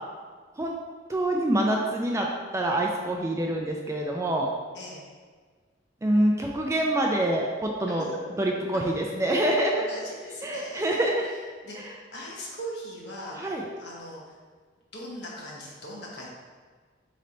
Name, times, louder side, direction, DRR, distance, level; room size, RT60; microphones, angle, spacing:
voice 1, 1.1-4.5 6.0-8.1 8.4-9.8 10.4-11.3 11.8-11.9 13.4-13.7, right 1 dB, 15° right, 0 dB, 0.3 m, -26 dB
voice 2, 9.7-11.0 11.6-13.4 13.8-14.3 14.9-16.3, equal, 60° left, -4 dB, 1.0 m, -40 dB
3.9 x 3.2 x 4.2 m, 1.5 s
head